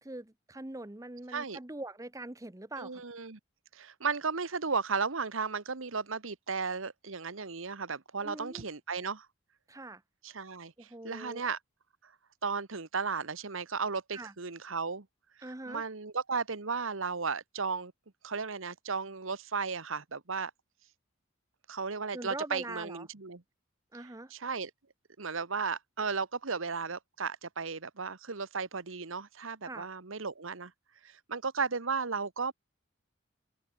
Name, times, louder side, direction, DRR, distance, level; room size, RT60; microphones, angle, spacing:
voice 1, 0.0-3.0 8.2-8.7 9.7-10.0 10.8-11.4 14.1-14.3 15.4-15.8 22.1-23.1 23.9-24.3 29.7-29.9, right 2 dB, 15° right, 0.8 m, -42 dB
voice 2, 2.8-3.4 3.7-9.3 10.2-11.6 12.0-12.1 12.4-15.1 15.7-17.9 18.2-20.5 21.7-23.4 24.3-24.7 25.2-30.7 31.0-32.5, right 5 dB, 80° right, 1.3 m, -35 dB
open air
head